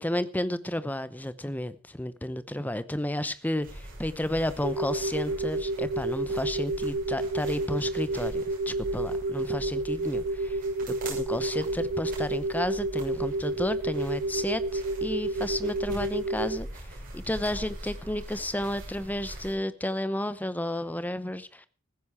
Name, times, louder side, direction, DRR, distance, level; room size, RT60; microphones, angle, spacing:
voice 1, 0.0-10.6 10.9-16.7 17.1-21.7, left 1 dB, 5° left, 0.7 m, -32 dB
sound 1, 3.6-19.5, right 1 dB, 40° right, 6.6 m, -43 dB
sound 2, 4.6-16.6, right 2 dB, 65° right, 2.1 m, -30 dB
15.5 x 14.5 x 4.8 m
head